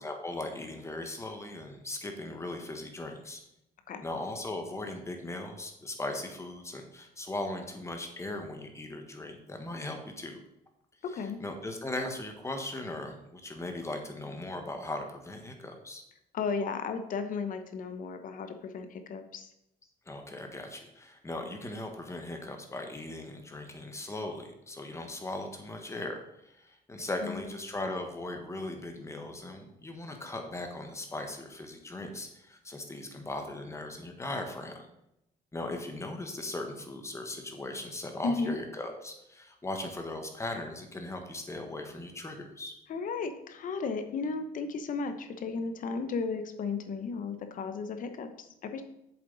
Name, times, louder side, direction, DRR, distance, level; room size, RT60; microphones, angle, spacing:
voice 1, 0.0-3.4 4.0-10.4 11.1-16.0 20.1-34.9 35.5-42.7, left 2 dB, 15° left, 4 dB, 1.5 m, -38 dB
voice 2, 16.3-19.5 27.2-27.5 38.2-38.6 42.9-48.8, left 4 dB, 50° left, 8 dB, 1.0 m, -34 dB
7.7 x 7.0 x 4.1 m, 0.82 s
cardioid pair, 110°, 17 cm